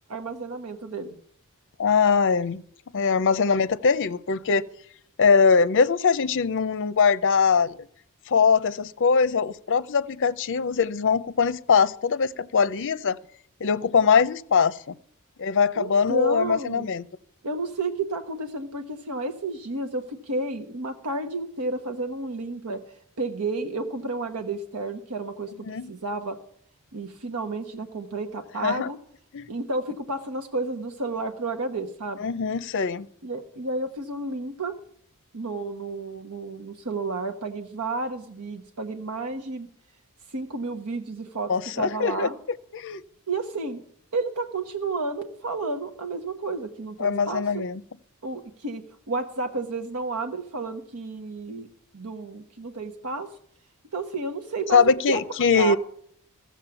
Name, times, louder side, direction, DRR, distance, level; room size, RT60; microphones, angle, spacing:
voice 1, 0.1-1.2 15.8-16.9 17.4-22.8 23.2-25.5 25.9-26.4 26.9-29.0 29.5-32.2 33.2-34.7 35.3-39.7 40.3-42.4 43.3-43.8 44.1-47.7 48.2-48.8 49.1-51.7 51.9-53.3 53.9-55.2 55.5-55.8, right 3 dB, 90° right, 1.1 m, -31 dB
voice 2, 1.8-2.6 2.9-4.6 5.2-7.8 8.3-13.2 13.6-14.8 15.4-17.0 25.7-25.9 28.6-28.9 29.3-29.5 32.2-33.1 41.5-42.3 42.7-43.0 47.0-47.8 54.7-55.8, left 5 dB, 60° left, 0.6 m, -22 dB
15.0 x 7.3 x 7.0 m
head